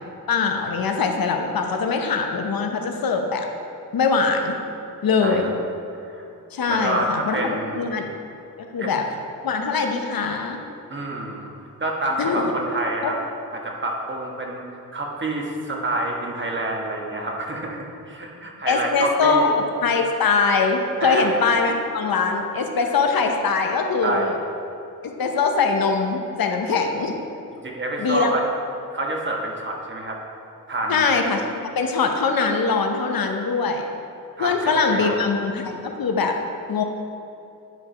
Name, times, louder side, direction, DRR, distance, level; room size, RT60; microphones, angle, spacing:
voice 1, 0.3-3.5 3.9-4.6 5.0-5.5 6.5-7.5 7.7-8.1 8.7-9.0 9.4-10.6 12.2-12.6 13.0-13.1 18.7-24.4 25.2-27.1 28.0-28.3 30.9-33.9 34.4-36.3 36.7-36.8, left 4 dB, 75° left, 4 dB, 0.8 m, -22 dB
voice 2, 5.9-6.3 6.7-7.9 8.8-8.9 10.9-13.2 13.5-19.6 21.0-21.3 24.0-24.4 27.5-28.4 28.9-30.2 30.7-31.1 34.4-35.2, right 2 dB, 30° right, -1 dB, 1.3 m, -28 dB
9.8 x 4.7 x 4.9 m, 2.7 s
wide cardioid pair, 95°, 36 cm